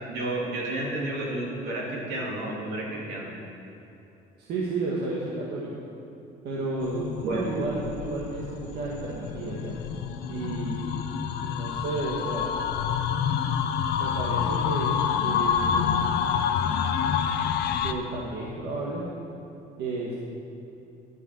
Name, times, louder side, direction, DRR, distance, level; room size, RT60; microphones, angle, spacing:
voice 1, 0.1-3.3 7.2-7.4, right 2 dB, 90° right, -4 dB, 2.6 m, -31 dB
voice 2, 4.4-5.7 6.4-9.8 10.3-10.8 11.4-12.5 13.9-15.9 17.8-19.1 19.8-20.1, right 2 dB, 70° right, -5 dB, 1.6 m, -32 dB
sound 1, 6.8-17.9, left 7 dB, 75° left, 0.6 m, -28 dB
11.0 x 6.0 x 7.0 m, 2.9 s
cardioid pair, 110°, 17 cm